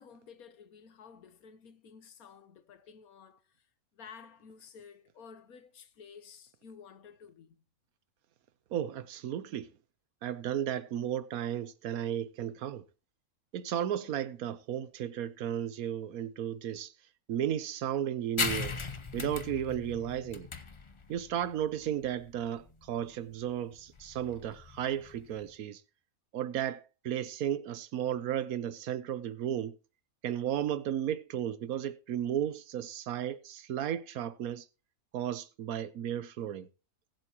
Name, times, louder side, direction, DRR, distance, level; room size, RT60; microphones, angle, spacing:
voice 1, 0.0-3.7 3.9-7.6, left 6 dB, 75° left, 1.6 m, -53 dB
voice 2, 8.7-9.7 10.2-12.8 13.5-16.9 17.3-18.8 19.1-20.5 21.1-25.8 26.3-29.8 30.2-34.6 35.1-36.7, right 10 dB, 80° right, 1.2 m, -34 dB
sound 1, 18.4-25.5, left 4 dB, 30° left, 0.6 m, -38 dB
20.0 x 7.5 x 3.0 m
omnidirectional pair, 1.5 m